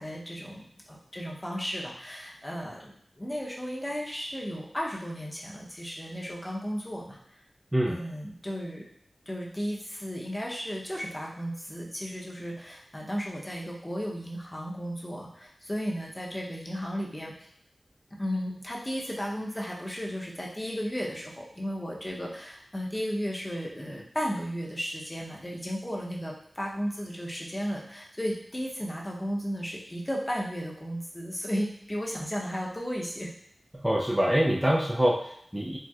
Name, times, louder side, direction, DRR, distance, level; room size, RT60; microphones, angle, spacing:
voice 1, 0.0-7.2 7.9-8.8 9.3-17.3 18.2-33.3, equal, 20° left, -2 dB, 0.7 m, -34 dB
voice 2, 33.7-35.8, equal, 10° right, -4 dB, 0.4 m, -25 dB
4.2 x 2.1 x 2.3 m, 0.66 s
wide cardioid pair, 70°, 0 cm